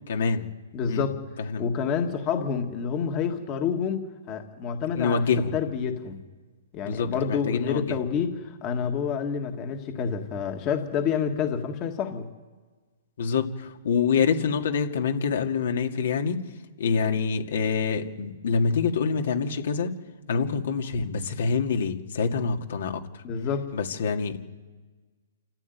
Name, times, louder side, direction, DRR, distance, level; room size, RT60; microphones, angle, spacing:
voice 1, 0.1-0.5 0.8-1.1 1.5-1.6 4.9-5.5 6.9-8.0 13.2-16.4 16.8-20.0 20.3-23.2 23.7-24.5, left 5 dB, 70° left, 4 dB, 2.2 m, -26 dB
voice 2, 0.7-1.2 1.6-5.2 5.5-6.2 6.7-12.3 23.2-23.7, left 7 dB, 25° left, 5 dB, 1.8 m, -28 dB
27.5 x 14.5 x 9.4 m, 1.4 s
hypercardioid pair, 155°, 0 cm